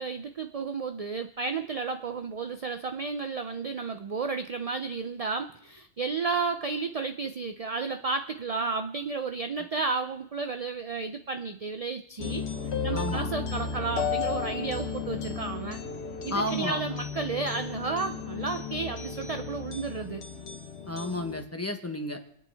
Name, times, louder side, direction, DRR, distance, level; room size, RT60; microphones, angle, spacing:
voice 1, 0.0-12.4 12.8-15.8 16.2-20.3, right 4 dB, 45° right, 7 dB, 0.5 m, -32 dB
sound 1, 12.2-21.4, left 5 dB, 60° left, 1.2 m, -34 dB
voice 2, 12.9-13.3 16.3-16.8 20.9-22.2, left 1 dB, 15° left, 4 dB, 1.1 m, -31 dB
29.5 x 10.0 x 3.5 m, 0.72 s
omnidirectional pair, 1.2 m